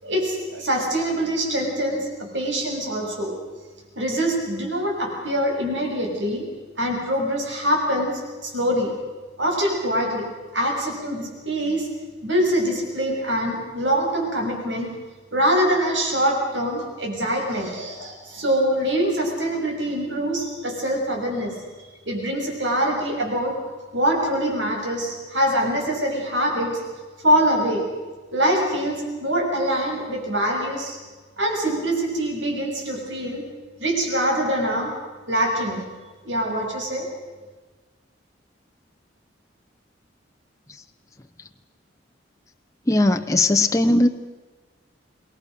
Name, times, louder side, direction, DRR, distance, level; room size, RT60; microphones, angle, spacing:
voice 1, 0.0-2.1 2.3-3.4 4.0-6.5 6.8-8.9 9.4-10.3 10.5-11.9 12.2-14.9 15.3-21.5 22.1-23.6 23.9-26.8 27.2-27.9 28.3-31.0 31.4-33.4 33.8-34.9 35.3-35.9 36.2-37.1, equal, 75° right, 1 dB, 7.2 m, -24 dB
voice 2, 42.9-44.1, left 2 dB, 15° left, 5 dB, 0.8 m, -19 dB
27.5 x 21.5 x 6.6 m, 1.3 s
head